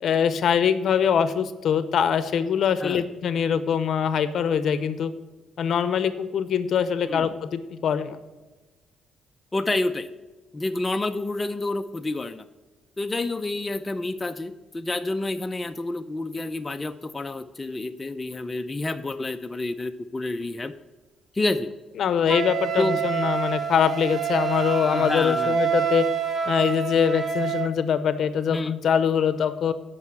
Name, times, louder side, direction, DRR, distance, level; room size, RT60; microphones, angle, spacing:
voice 1, 0.0-5.1 5.6-8.2 22.0-26.1 26.5-29.7, left 7 dB, 65° left, 13 dB, 0.7 m, -23 dB
voice 2, 9.5-10.1 10.5-12.4 13.0-20.7 21.4-21.7 22.8-23.0 24.9-25.6 28.5-28.7, left 2 dB, 20° left, 7 dB, 0.5 m, -29 dB
Wind instrument woodwind instrument, 22.3-27.7, right 7 dB, 40° right, 1.1 m, -27 dB
9.5 x 5.5 x 5.8 m, 1.2 s
cardioid pair, 90°, 0 cm